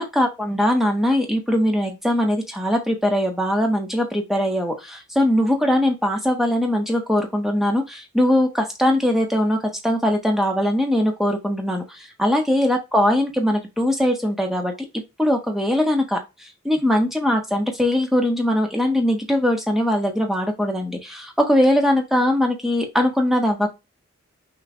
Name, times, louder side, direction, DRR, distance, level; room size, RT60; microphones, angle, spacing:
voice 1, 0.0-14.7 15.2-16.2 16.6-23.7, left 1 dB, ahead, 2 dB, 1.0 m, -21 dB
6.1 x 2.5 x 3.2 m, 0.23 s
head